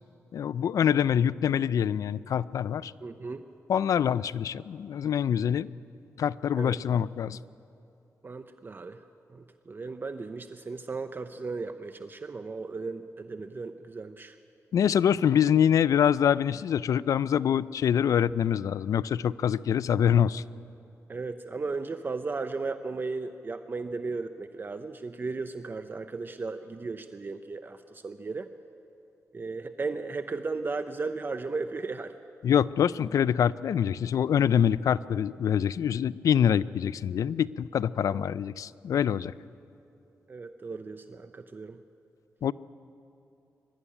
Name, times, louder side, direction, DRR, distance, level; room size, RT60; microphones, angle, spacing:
voice 1, 0.3-2.9 3.7-5.7 6.2-7.4 14.7-20.4 32.4-39.3 42.4-42.5, left 9 dB, 80° left, 18 dB, 0.4 m, -25 dB
voice 2, 3.0-3.4 6.6-6.8 8.2-9.0 9.3-14.4 21.1-28.5 29.3-32.2 38.1-38.3 40.3-41.8, right 3 dB, 35° right, 9 dB, 0.7 m, -35 dB
23.5 x 13.0 x 10.0 m, 2.7 s
cardioid pair, 85°, 6 cm